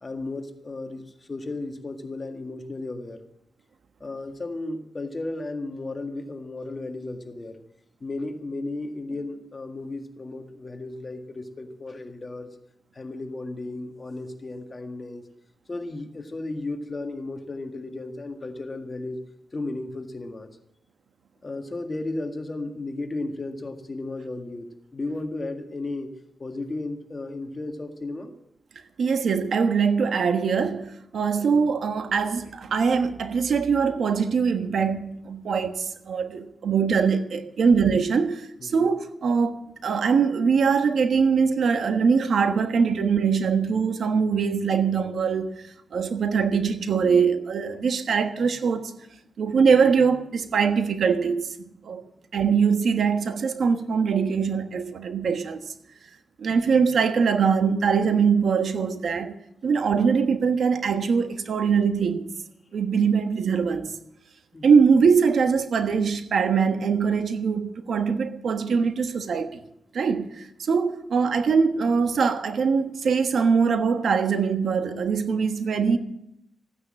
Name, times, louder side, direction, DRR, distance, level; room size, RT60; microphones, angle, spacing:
voice 1, 0.0-3.2 4.0-7.6 8.0-12.5 12.9-15.2 15.7-19.2 19.5-20.5 21.4-24.7 24.9-26.1 26.4-28.3 31.4-31.7 38.6-38.8 64.5-64.7, left 2 dB, 30° left, 1.8 m, -34 dB
voice 2, 29.0-39.6 39.8-45.5 45.9-48.9 49.4-51.4 51.8-52.0 52.3-55.6 56.4-59.3 59.6-62.3 62.7-63.9 64.6-69.6 69.9-76.0, right 5 dB, 65° right, 1.3 m, -22 dB
15.0 x 9.7 x 7.6 m
cardioid pair, 95°, 0 cm